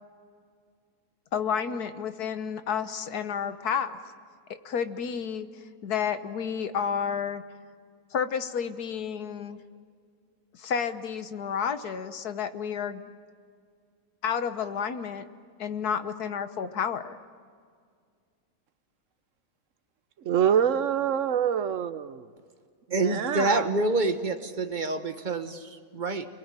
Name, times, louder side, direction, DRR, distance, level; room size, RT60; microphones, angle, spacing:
voice 1, 1.3-3.9 4.7-5.5 5.8-7.4 8.1-9.6 10.5-13.1 14.2-15.2 15.6-17.2, left 7 dB, 80° left, 10 dB, 1.6 m, -30 dB
voice 2, 20.2-22.2 22.9-23.7, right 8 dB, 60° right, 13 dB, 1.2 m, -25 dB
voice 3, 22.9-26.3, right 2 dB, 30° right, 8 dB, 1.3 m, -27 dB
30.0 x 22.0 x 9.0 m, 2.1 s
omnidirectional pair, 1.6 m